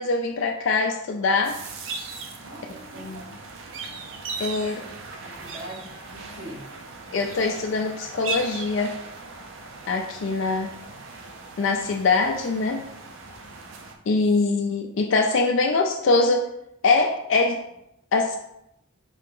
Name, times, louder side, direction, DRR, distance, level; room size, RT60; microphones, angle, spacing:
voice 1, 0.0-1.6 3.0-3.2 4.4-4.7 7.1-9.0 9.9-10.7 11.6-12.9 14.1-16.5 16.8-17.6 18.1-18.4, left 3 dB, 65° left, 2 dB, 0.4 m, -23 dB
sound 1, 1.4-13.9, right 3 dB, 70° right, 0.6 m, -38 dB
voice 2, 2.4-3.2 4.5-4.9 5.2-6.7, right 1 dB, 90° right, -5 dB, 1.5 m, -42 dB
4.7 x 2.8 x 3.7 m, 0.80 s
head